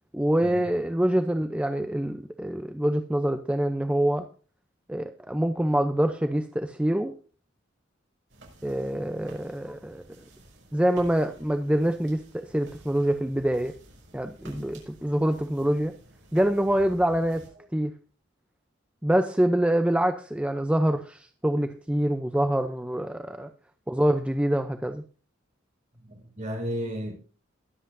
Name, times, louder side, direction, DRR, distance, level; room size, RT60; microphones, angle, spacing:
voice 1, 0.1-4.3 4.9-7.1 8.6-10.2 10.7-13.7 14.1-15.9 16.3-17.5 17.7-17.9 19.0-23.5 23.9-25.0, right 1 dB, 5° right, 0.6 m, -25 dB
sound 1, 8.3-17.5, right 1 dB, 70° right, 6.5 m, -52 dB
voice 2, 26.1-27.1, equal, 40° right, 5.6 m, -33 dB
22.0 x 8.0 x 2.7 m
head